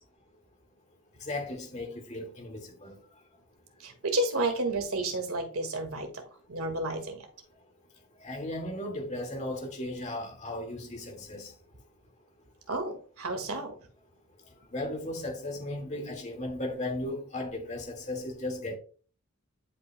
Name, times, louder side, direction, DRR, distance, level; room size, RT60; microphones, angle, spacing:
voice 1, 1.2-3.0 8.2-11.5 14.7-18.8, left 1 dB, 30° left, 1.9 m, -36 dB
voice 2, 3.8-6.2 6.5-7.3 12.7-13.8, right 2 dB, 75° right, 1.8 m, -31 dB
11.0 x 5.5 x 2.2 m
head